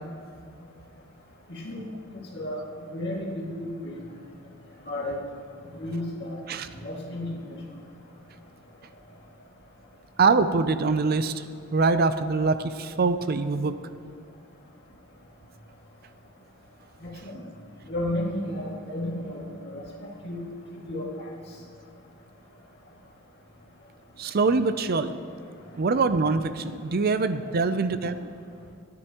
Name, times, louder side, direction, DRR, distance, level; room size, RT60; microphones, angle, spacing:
voice 1, 1.5-1.8 2.3-2.6 2.9-3.9 4.9-5.2 5.7-6.4 6.7-7.4 17.0-17.4 17.9-19.8 20.2-20.4 20.7-21.3, left 1 dB, 50° left, -2 dB, 2.1 m, -32 dB
voice 2, 10.2-11.4 11.7-13.7 24.2-25.2 25.8-28.3, right 4 dB, 45° right, 11 dB, 0.5 m, -24 dB
27.0 x 9.8 x 3.0 m, 2.2 s
head